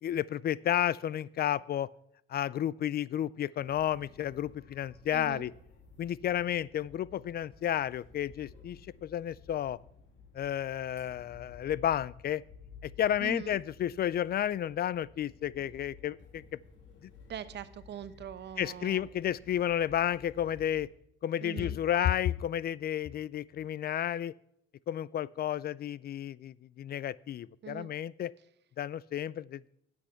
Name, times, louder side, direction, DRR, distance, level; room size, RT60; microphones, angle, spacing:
voice 1, 0.0-1.9 2.3-5.5 6.0-9.8 10.3-12.4 12.8-16.4 17.0-17.1 18.6-20.9 21.2-24.3 24.9-28.3 28.8-29.6, left 11 dB, 50° left, 22 dB, 0.4 m, -32 dB
sound 1, 3.6-20.9, left 5 dB, 70° left, 2.8 m, -55 dB
voice 2, 5.1-5.5 13.2-13.6 17.3-19.0 21.4-21.8 27.6-27.9, right 9 dB, 60° right, 14 dB, 0.9 m, -42 dB
10.0 x 8.7 x 5.7 m, 0.74 s
cardioid pair, 90°, 20 cm